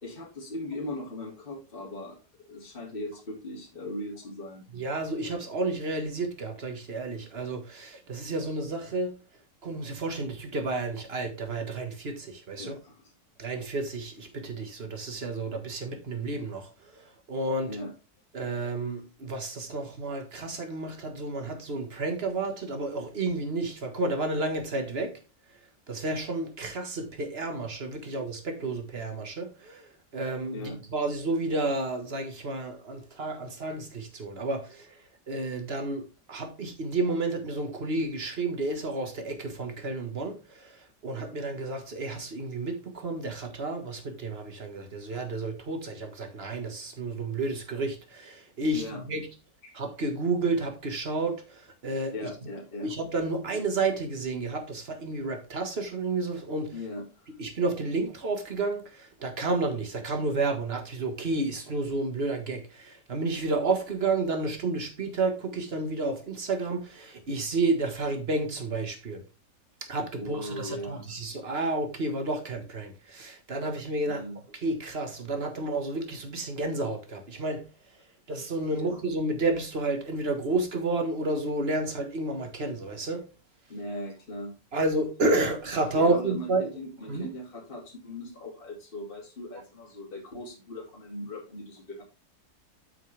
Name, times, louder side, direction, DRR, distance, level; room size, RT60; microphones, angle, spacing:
voice 1, 0.0-2.2 2.5-4.7 12.6-13.1 17.7-17.9 30.5-30.8 48.7-49.0 49.6-49.8 52.1-52.9 56.7-57.0 70.2-71.0 74.0-74.4 78.7-79.0 83.7-84.6 85.9-92.0, left 1 dB, 30° left, 2.6 m, -39 dB
voice 2, 4.7-9.1 9.6-12.8 13.4-17.8 18.3-25.2 25.9-35.0 35.3-49.3 49.7-52.1 52.8-56.8 57.4-69.2 69.9-74.2 74.6-77.7 78.3-83.3 84.7-86.7 87.1-87.3, right 2 dB, 35° right, 1.7 m, -31 dB
8.4 x 6.1 x 3.4 m
omnidirectional pair, 1.8 m